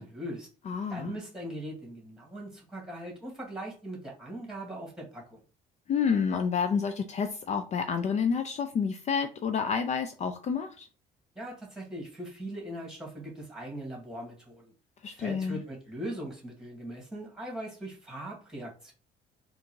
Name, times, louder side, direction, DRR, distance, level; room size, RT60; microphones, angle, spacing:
voice 1, 0.0-0.5 0.9-5.4 11.4-14.6 15.0-18.9, right 1 dB, 5° right, -1 dB, 2.0 m, -40 dB
voice 2, 0.7-1.2 5.9-10.9 15.0-15.6, left 6 dB, 40° left, 8 dB, 0.5 m, -29 dB
3.7 x 2.6 x 4.5 m, 0.37 s
cardioid pair, 110°, 17 cm